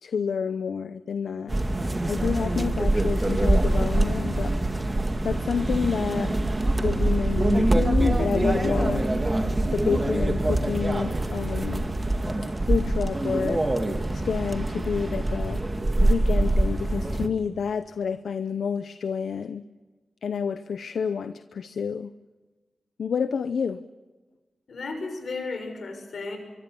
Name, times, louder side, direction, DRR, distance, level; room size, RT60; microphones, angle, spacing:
voice 1, 0.0-1.6 2.1-4.6 5.2-6.3 6.8-9.1 9.7-11.8 12.4-13.6 14.1-15.6 16.0-19.6 20.2-22.1 23.0-23.8, left 6 dB, 90° left, 12 dB, 0.7 m, -29 dB
sound 1, 1.5-17.3, right 2 dB, 25° right, 2.1 m, -24 dB
voice 2, 24.7-26.4, left 3 dB, 70° left, 5 dB, 6.4 m, -34 dB
24.5 x 24.0 x 7.0 m, 1.3 s
wide cardioid pair, 100°, 0 cm